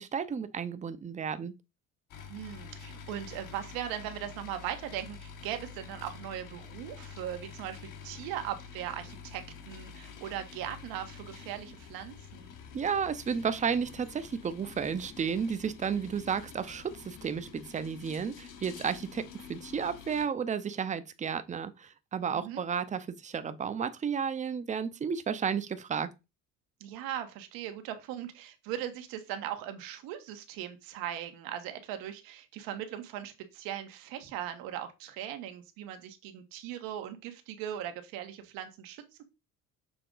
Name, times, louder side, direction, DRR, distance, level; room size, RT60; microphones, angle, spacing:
voice 1, 0.0-1.5 12.7-26.1, right 6 dB, 20° right, 0.6 m, -32 dB
sound 1, 2.1-20.3, left 6 dB, 65° left, 1.6 m, -48 dB
voice 2, 2.3-12.5 22.3-22.6 26.8-39.2, right 11 dB, 90° right, 1.3 m, -39 dB
6.8 x 3.6 x 3.8 m
cardioid pair, 120°, 34 cm